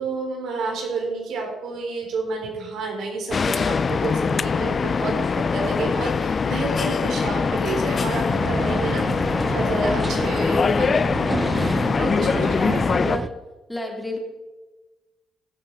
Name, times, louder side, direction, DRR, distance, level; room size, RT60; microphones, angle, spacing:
voice 1, 0.0-9.1 9.4-11.3 12.0-12.4 12.7-12.8, right 3 dB, 75° right, 1 dB, 3.8 m, -29 dB
sound 1, 3.3-13.2, left 5 dB, 40° left, 0.3 m, -23 dB
sound 2, 8.3-13.3, right 3 dB, 30° right, 0.6 m, -29 dB
voice 2, 11.8-13.3 13.7-14.2, left 1 dB, 10° left, 1 dB, 2.8 m, -31 dB
16.0 x 8.9 x 4.6 m, 1.2 s
cardioid pair, 90°, 0 cm